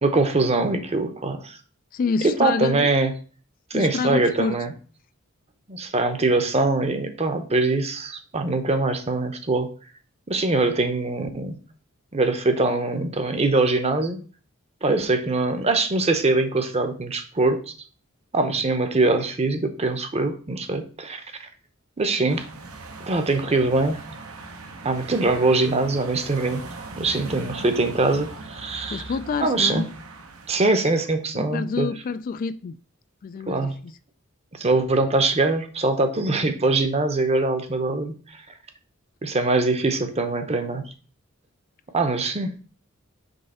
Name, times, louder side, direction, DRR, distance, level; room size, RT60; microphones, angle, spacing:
voice 1, 0.0-1.6 2.2-3.1 3.7-4.7 5.7-9.7 10.3-11.6 12.1-14.2 14.8-17.7 18.3-21.2 22.0-22.5 23.1-24.0 24.8-26.6 27.0-29.0 29.4-29.9 30.5-31.9 33.5-33.7 34.6-38.1 39.2-40.8 41.9-42.5, right 2 dB, 30° right, 0.8 m, -23 dB
voice 2, 1.9-2.9 3.7-4.6 28.9-30.0 31.3-32.8 33.2-34.0, left 4 dB, 40° left, 0.3 m, -28 dB
sound 1, 22.3-31.1, right 3 dB, 80° right, 1.0 m, -40 dB
5.5 x 3.4 x 5.5 m
head